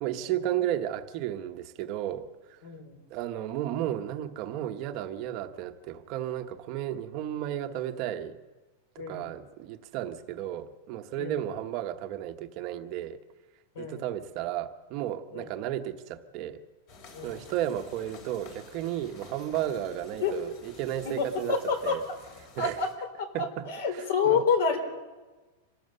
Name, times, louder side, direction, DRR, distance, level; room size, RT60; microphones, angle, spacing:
voice 1, 0.0-2.6 3.1-8.4 8.9-13.2 13.8-16.6 17.2-21.6 21.8-22.0 22.6-22.8 23.3-24.4, right 12 dB, 30° right, 7 dB, 1.0 m, -33 dB
voice 2, 2.6-2.9 9.0-9.3 11.2-11.4 13.8-14.0 15.3-15.5 17.1-17.4 20.2-20.3 21.0-22.0 22.6-22.9 23.2-24.8, left 5 dB, 55° left, 9 dB, 3.6 m, -28 dB
sound 1, 16.9-22.9, left 3 dB, 35° left, 3.8 m, -51 dB
25.5 x 16.5 x 6.7 m, 1.2 s
supercardioid pair, 175°, 0 cm